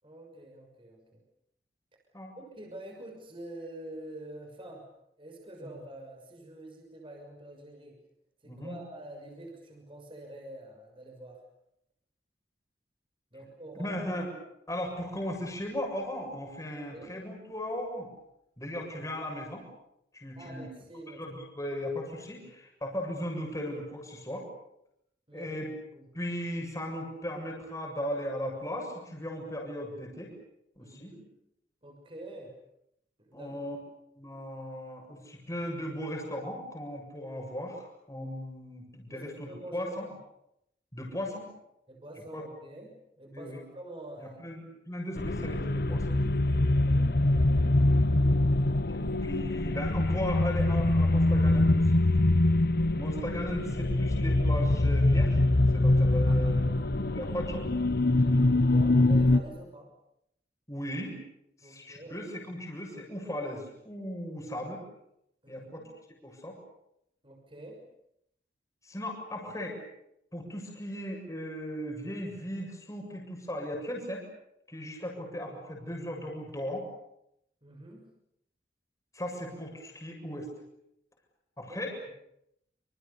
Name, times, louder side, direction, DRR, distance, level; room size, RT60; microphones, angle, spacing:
voice 1, 0.0-1.2 2.4-4.9 5.2-8.0 8.4-11.4 13.3-14.0 16.9-17.2 20.4-21.2 22.4-22.5 25.3-25.5 25.9-26.1 30.8-31.3 31.8-32.5 33.2-33.6 39.1-40.2 41.9-44.4 46.7-47.2 56.3-56.6 58.7-59.9 61.6-62.2 65.4-65.9 67.2-67.9 77.6-78.1 81.7-81.8, right 1 dB, 30° right, 1 dB, 6.4 m, -46 dB
voice 2, 8.4-8.8 13.8-14.3 14.7-18.1 18.6-19.6 20.1-20.7 21.1-24.4 25.3-25.7 26.1-30.3 30.8-31.2 33.3-33.8 34.1-37.8 38.1-40.1 40.9-41.5 42.3-42.4 43.3-43.6 44.2-46.1 48.9-52.0 52.9-55.4 55.7-57.6 58.2-58.5 60.7-61.2 61.6-64.8 65.5-65.8 66.2-66.5 68.8-69.8 70.3-74.2 74.7-76.9 79.1-80.5 81.6-81.9, equal, 20° left, 0 dB, 7.4 m, -37 dB
sound 1, 45.2-59.4, left 2 dB, 55° left, 1.1 m, -24 dB
28.0 x 27.5 x 7.1 m, 0.78 s
head